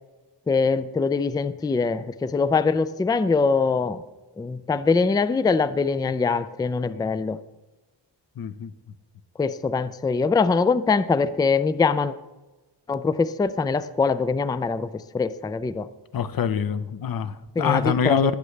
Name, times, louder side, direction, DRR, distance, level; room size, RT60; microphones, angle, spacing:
voice 1, 0.5-4.0 4.4-7.4 9.4-12.1 12.9-15.9 17.6-18.3, left 4 dB, 10° left, 14 dB, 0.3 m, -23 dB
voice 2, 6.9-7.2 8.4-8.7 16.1-18.3, left 7 dB, 55° left, 14 dB, 0.7 m, -25 dB
20.0 x 8.2 x 3.3 m, 1.1 s
cardioid pair, 85°, 43 cm